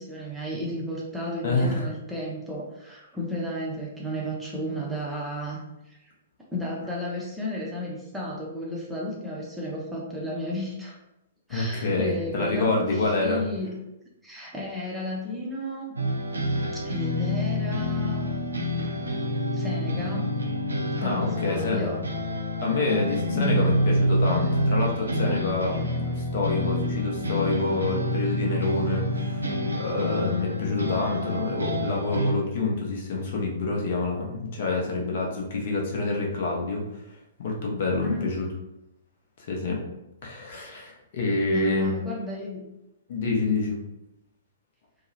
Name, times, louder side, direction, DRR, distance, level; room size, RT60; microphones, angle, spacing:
voice 1, 0.0-6.0 6.5-11.0 11.5-13.7 14.2-15.9 16.7-18.2 19.5-20.3 21.0-22.0 23.3-23.7 38.0-38.3 41.5-42.7, left 1 dB, 5° right, -5 dB, 0.5 m, -33 dB
voice 2, 1.4-1.9 11.5-13.4 21.0-21.9 22.6-29.4 29.8-37.0 37.4-38.5 39.4-39.8 40.2-41.9 43.1-43.8, left 3 dB, 50° left, -1 dB, 0.6 m, -27 dB
sound 1, 16.0-32.3, equal, 80° right, 0.4 m, -27 dB
2.7 x 2.0 x 2.6 m, 0.89 s
figure-of-eight pair, 115°, 0 cm